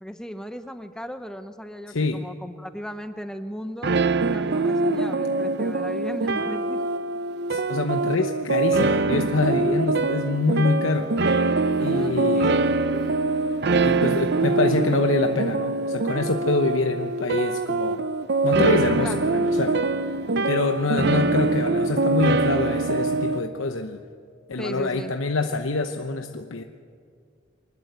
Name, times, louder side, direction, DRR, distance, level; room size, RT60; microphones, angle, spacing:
voice 1, 0.0-3.9 4.2-6.8 11.9-12.7 19.0-19.3 21.1-21.3 24.6-25.1, equal, 5° left, 9 dB, 0.8 m, -36 dB
voice 2, 1.9-2.2 7.5-11.1 11.8-12.6 13.8-18.0 18.4-19.8 20.4-24.0 24.5-26.6, left 3 dB, 80° left, 6 dB, 0.9 m, -25 dB
sound 1, 3.8-23.4, right 3 dB, 55° right, 0.7 m, -23 dB
Female singing, 11.6-14.8 16.8-16.9, left 1 dB, 25° left, 2.3 m, -42 dB
24.0 x 20.0 x 8.1 m, 2.2 s
head